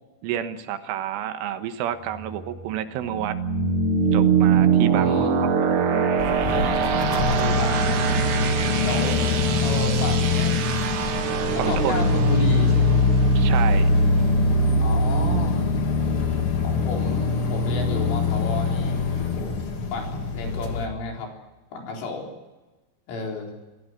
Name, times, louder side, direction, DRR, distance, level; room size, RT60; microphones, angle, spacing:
voice 1, 0.2-3.4 4.1-5.3 5.6-5.8 11.6-11.9 13.4-13.9, right 10 dB, 90° right, 9 dB, 3.8 m, -29 dB
sound 1, 2.1-14.7, right 6 dB, 55° right, 2.5 m, -24 dB
voice 2, 5.0-5.4 7.1-8.0 8.8-9.2 9.6-10.6 11.7-13.1 14.8-15.7 16.6-19.6 19.9-21.3 21.7-22.3 23.1-23.5, left 3 dB, 80° left, 1 dB, 6.6 m, -32 dB
sound 2, 6.2-20.9, left 2 dB, 45° left, 1.9 m, -23 dB
27.5 x 17.0 x 7.6 m, 1.1 s
omnidirectional pair, 5.6 m